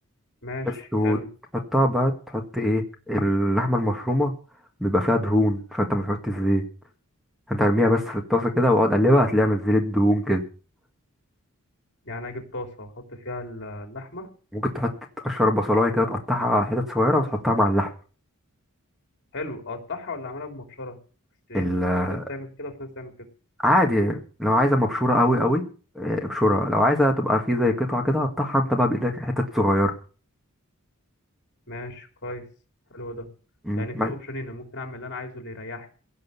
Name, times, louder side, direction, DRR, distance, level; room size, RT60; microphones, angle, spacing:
voice 1, 0.4-1.3 12.0-14.3 19.3-21.0 21.5-23.1 31.7-32.5 32.9-33.3 33.8-35.9, left 2 dB, 55° left, 5 dB, 3.5 m, -36 dB
voice 2, 1.7-4.3 4.8-6.6 7.5-10.4 14.5-14.9 15.2-17.9 21.5-22.2 23.6-25.6 25.9-29.9 33.7-34.1, left 1 dB, ahead, 4 dB, 1.8 m, -22 dB
17.0 x 6.4 x 8.4 m, 0.38 s
head